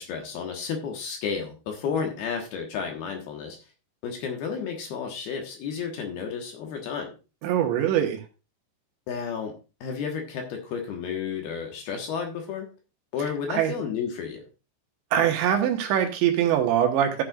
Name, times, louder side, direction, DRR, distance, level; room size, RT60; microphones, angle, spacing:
voice 1, 0.0-3.6 4.0-7.1 9.1-12.7 13.1-14.4, left 6 dB, 65° left, 2 dB, 2.9 m, -32 dB
voice 2, 7.4-8.2 13.5-13.7 15.1-17.2, right 10 dB, 75° right, 3 dB, 3.4 m, -23 dB
14.0 x 7.6 x 2.4 m, 0.32 s
omnidirectional pair, 5.5 m